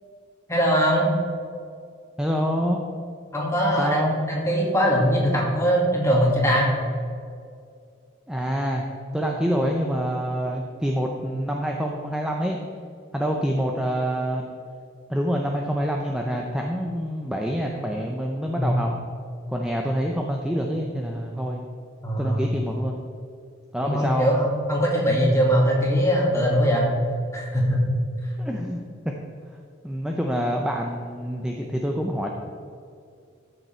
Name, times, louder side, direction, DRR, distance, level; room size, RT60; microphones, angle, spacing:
voice 1, 0.5-1.1 3.3-6.7 18.6-18.7 22.0-22.5 23.8-26.9 27.3-27.8, equal, 15° left, -2 dB, 2.0 m, -21 dB
voice 2, 2.2-2.8 3.8-4.2 8.3-8.9 9.1-12.6 13.1-14.5 15.1-18.9 19.5-21.6 22.2-23.0 23.7-24.3 28.4-29.1 29.8-32.3, equal, 5° right, 0 dB, 0.6 m, -26 dB
13.0 x 6.7 x 4.4 m, 2.4 s
head